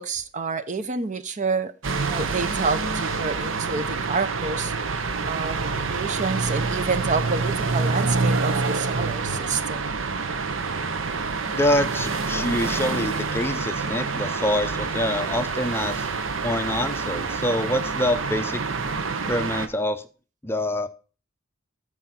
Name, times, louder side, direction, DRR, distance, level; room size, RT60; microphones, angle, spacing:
voice 1, 0.0-1.7 2.0-4.7 5.2-10.0, right 4 dB, 40° right, 0.7 m, -28 dB
sound 1, 1.8-19.7, right 4 dB, 70° right, 0.9 m, -27 dB
voice 2, 11.6-16.1 16.4-18.6 19.3-20.0 20.4-20.9, left 1 dB, 10° left, 0.6 m, -25 dB
14.0 x 4.8 x 4.3 m
head